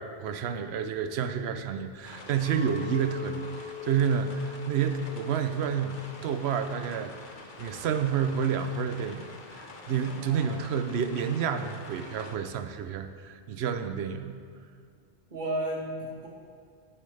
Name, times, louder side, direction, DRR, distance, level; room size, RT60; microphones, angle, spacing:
voice 1, 0.0-7.3 7.6-14.4, right 7 dB, 75° right, 9 dB, 0.8 m, -30 dB
sound 1, 2.0-12.4, left 3 dB, 50° left, 0.9 m, -47 dB
Chink clink, 2.4-6.8 7.1-7.6, left 5 dB, 65° left, 1.4 m, -42 dB
voice 2, 10.2-10.6 15.3-16.3, right 1 dB, 45° right, -2 dB, 1.5 m, -33 dB
10.5 x 7.2 x 3.3 m, 2.1 s
omnidirectional pair, 1.1 m